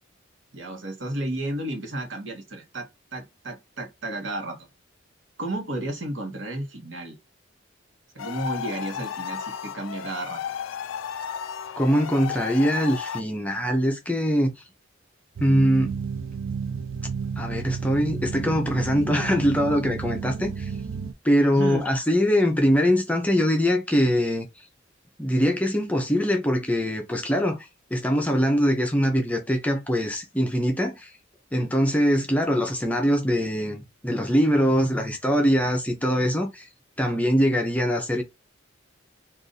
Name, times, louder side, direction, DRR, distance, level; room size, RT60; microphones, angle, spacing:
voice 1, 0.5-4.7 5.4-7.2 8.1-10.4 21.5-21.9, right 1 dB, 65° right, 1.1 m, -32 dB
sound 1, 8.2-13.2, left 8 dB, 80° left, 0.3 m, -34 dB
voice 2, 11.8-14.5 15.4-16.0 17.4-20.7 21.2-24.5 25.2-31.1 31.5-36.7 37.0-38.2, equal, 10° left, 0.5 m, -23 dB
sound 2, 15.4-21.1, right 6 dB, 85° right, 0.4 m, -32 dB
2.5 x 2.4 x 3.8 m
head